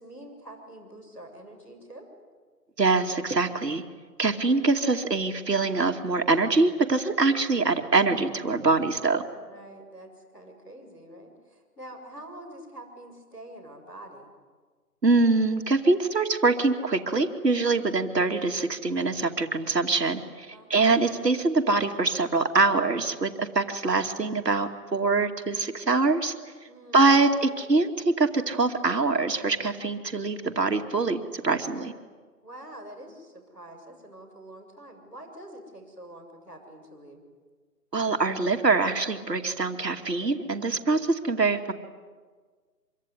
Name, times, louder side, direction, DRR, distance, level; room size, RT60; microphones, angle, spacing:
voice 1, 0.0-2.1 9.3-14.3 20.5-20.8 26.7-27.2 32.4-37.2, right 1 dB, 5° left, -10 dB, 3.3 m, -46 dB
voice 2, 2.8-3.8 4.2-9.2 15.0-26.3 26.9-31.9 37.9-41.7, right 3 dB, 80° right, 5 dB, 2.5 m, -24 dB
25.5 x 24.0 x 9.7 m, 1.5 s
figure-of-eight pair, 170°, 48 cm